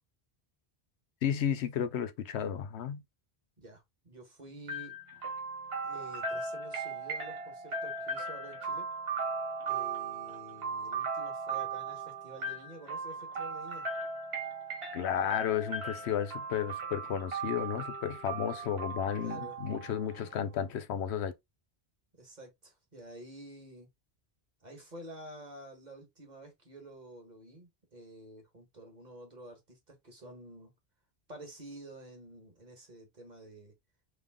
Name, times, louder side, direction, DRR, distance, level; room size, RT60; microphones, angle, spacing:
voice 1, 1.2-3.0 14.9-21.3, left 8 dB, 85° left, 0.9 m, -33 dB
voice 2, 3.6-4.9 5.8-8.9 9.7-13.9 19.2-19.6 22.2-23.9 24.6-30.7 31.3-33.7, right 1 dB, 40° right, 1.6 m, -50 dB
sound 1, 4.7-20.5, right 3 dB, 65° right, 1.5 m, -38 dB
3.6 x 3.3 x 3.6 m
omnidirectional pair, 1.1 m